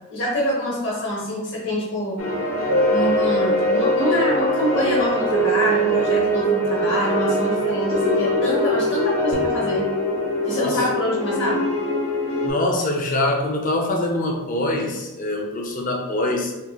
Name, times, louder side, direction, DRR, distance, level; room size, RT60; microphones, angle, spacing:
voice 1, 0.1-2.2 2.9-9.9 10.5-11.6, equal, 55° left, -3 dB, 1.0 m, -25 dB
sound 1, 2.2-12.5, left 1 dB, 75° left, 0.7 m, -26 dB
sound 2, 2.7-13.1 13.5-13.6, right 1 dB, 80° right, 1.1 m, -24 dB
sound 3, 9.3-11.0, equal, 65° right, 0.5 m, -40 dB
voice 2, 12.4-16.5, left 1 dB, 35° left, 1 dB, 0.5 m, -24 dB
2.8 x 2.7 x 3.5 m, 1.0 s
head